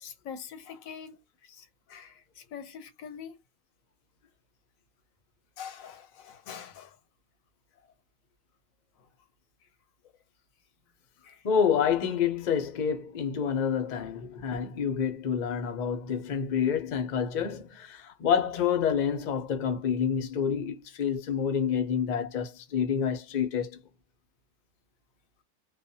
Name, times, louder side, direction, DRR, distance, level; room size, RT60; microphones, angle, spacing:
voice 1, 0.0-1.2 1.5-1.6 1.9-2.1 2.5-3.3 5.6-6.9 11.2-11.4, left 7 dB, 85° left, 1.1 m, -43 dB
voice 2, 11.4-23.8, left 7 dB, 50° left, 0.6 m, -28 dB
2.4 x 2.3 x 2.7 m
omnidirectional pair, 1.4 m